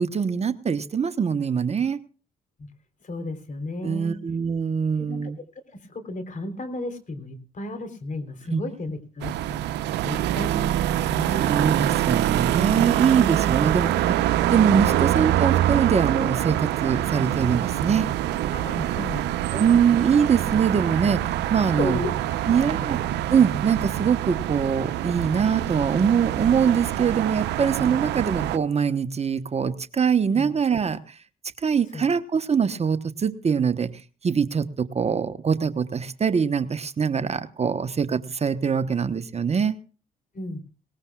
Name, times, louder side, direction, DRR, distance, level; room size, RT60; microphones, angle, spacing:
voice 1, 0.0-2.0 3.8-5.4 8.5-8.6 11.4-14.2 14.5-18.1 19.5-22.0 22.5-23.0 23.3-31.2 31.6-33.9 34.2-39.8, right 6 dB, 40° right, 11 dB, 1.1 m, -23 dB
voice 2, 3.0-4.2 5.0-5.3 5.9-9.6 10.0-11.6 14.8-15.0 18.5-19.6 21.7-22.1 22.5-22.9 30.3-30.5 31.9-32.1 40.3-40.6, left 2 dB, 45° left, 9 dB, 3.7 m, -34 dB
sound 1, 9.2-28.6, right 13 dB, 80° right, 0.8 m, -25 dB
19.5 x 19.0 x 2.4 m, 0.37 s
supercardioid pair, 60°, 17 cm